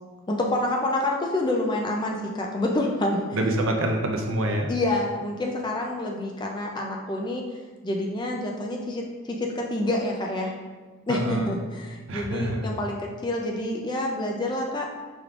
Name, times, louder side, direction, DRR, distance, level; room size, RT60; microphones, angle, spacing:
voice 1, 0.3-3.2 4.7-7.4 7.8-10.5 11.1-14.9, left 1 dB, 20° left, 0 dB, 0.3 m, -27 dB
voice 2, 3.3-4.7 11.1-11.5 12.1-12.6, right 1 dB, 70° right, 2 dB, 0.6 m, -26 dB
4.9 x 3.5 x 2.4 m, 1.4 s
head